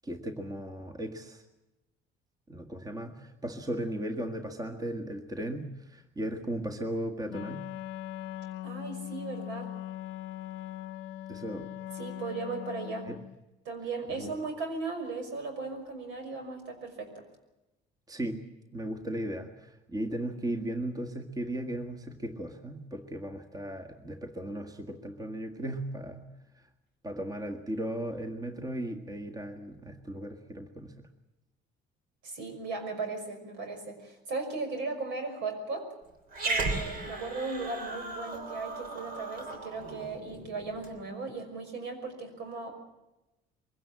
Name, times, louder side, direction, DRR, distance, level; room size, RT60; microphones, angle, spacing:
voice 1, 0.0-1.4 2.5-7.7 11.3-11.7 13.1-13.2 14.2-14.3 18.1-18.5 18.7-26.3 27.0-30.9, right 1 dB, 20° right, 5 dB, 1.7 m, -36 dB
Wind instrument woodwind instrument, 7.3-13.4, left 13 dB, 80° left, 0.7 m, -40 dB
voice 2, 8.6-9.7 12.0-13.1 13.6-17.2 32.2-35.9 36.4-42.7, right 3 dB, 75° right, 5 dB, 5.9 m, -37 dB
Growling, 36.3-41.0, right 2 dB, 50° right, 3.6 m, -36 dB
23.0 x 16.5 x 8.7 m, 1.0 s
cardioid pair, 115°, 19 cm